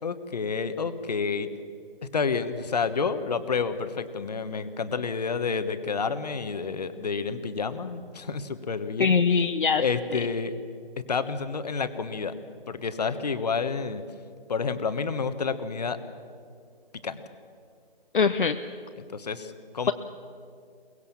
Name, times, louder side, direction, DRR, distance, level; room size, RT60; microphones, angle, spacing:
voice 1, 0.0-1.5 2.1-9.2 9.8-10.5 11.0-12.3 12.7-14.0 14.5-16.0 17.0-17.2 19.0-19.9, left 5 dB, 45° left, 11 dB, 1.3 m, -29 dB
voice 2, 9.0-9.8 18.1-18.6, left 5 dB, 60° left, 8 dB, 0.8 m, -22 dB
23.0 x 21.5 x 7.3 m, 2.3 s
hypercardioid pair, 170°, 30 cm